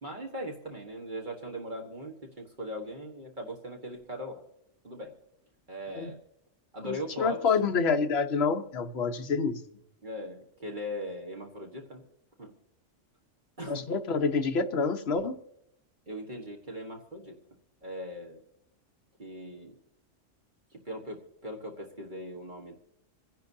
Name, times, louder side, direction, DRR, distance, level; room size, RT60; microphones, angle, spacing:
voice 1, 0.0-4.4 4.8-5.1 5.7-6.2 6.7-7.5 10.0-12.0 12.4-12.5 13.6-13.9 16.1-17.4 17.8-18.4 19.2-19.8 20.7-22.7, equal, 40° right, 0 dB, 1.5 m, -39 dB
voice 2, 6.8-9.6 13.7-15.4, left 5 dB, 60° left, 6 dB, 1.1 m, -27 dB
28.0 x 10.5 x 2.7 m, 0.81 s
omnidirectional pair, 1.3 m